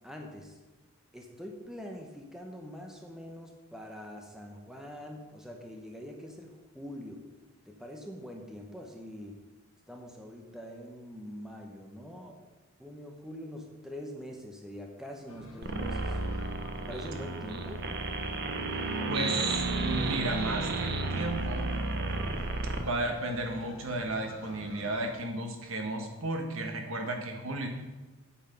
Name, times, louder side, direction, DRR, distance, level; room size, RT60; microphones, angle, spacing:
voice 1, 0.0-0.6 1.1-7.2 7.7-9.4 9.9-12.4 12.8-16.2 16.7-17.8, equal, ahead, 1 dB, 1.0 m, -44 dB
sound 1, 15.3-25.1, left 1 dB, 80° left, 1.5 m, -49 dB
sound 2, 15.6-22.8, right 3 dB, 50° right, 0.9 m, -32 dB
voice 2, 19.1-21.7 22.7-27.7, right 2 dB, 65° right, 3 dB, 1.5 m, -34 dB
8.7 x 8.2 x 5.4 m, 1.2 s
head